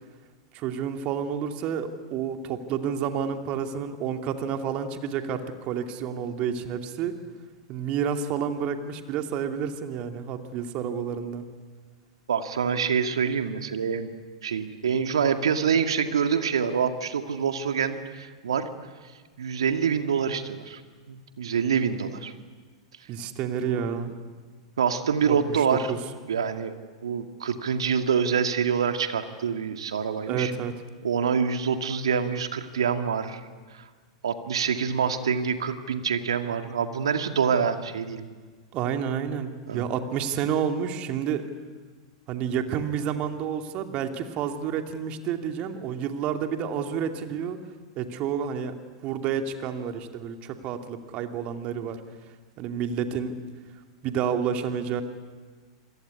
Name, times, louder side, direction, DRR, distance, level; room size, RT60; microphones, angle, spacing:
voice 1, 0.5-7.1 7.7-11.5 23.1-24.1 25.3-26.0 30.3-30.7 38.7-41.4 42.3-47.6 48.0-48.8 49.0-52.0 52.6-53.4 54.0-55.0, right 8 dB, 40° right, 6 dB, 2.7 m, -29 dB
voice 2, 12.3-14.1 14.4-18.7 19.4-20.8 21.1-22.3 23.6-23.9 24.8-25.9 26.3-26.8 27.0-30.5 31.0-33.4 33.7-33.9 34.2-38.3 39.7-39.8, right 6 dB, 70° right, 7 dB, 2.2 m, -26 dB
27.5 x 22.0 x 9.8 m, 1.5 s
figure-of-eight pair, 95°, 3 cm